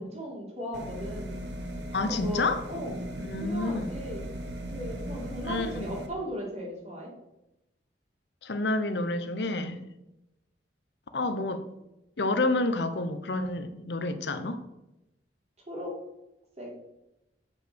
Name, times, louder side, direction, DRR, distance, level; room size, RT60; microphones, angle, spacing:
voice 1, 0.0-1.3 2.0-3.0 3.4-4.2 4.7-7.1 15.7-16.0 16.6-16.7, equal, 35° right, 2.6 m, -37 dB
sound 1, 0.7-6.1, right 1 dB, 70° right, 1.2 m, -38 dB
voice 2, 1.9-2.6 3.2-4.0 5.4-5.8 8.4-9.8 11.1-11.6 12.2-14.6, left 2 dB, 70° left, 0.8 m, -29 dB
8.3 x 5.7 x 6.2 m
head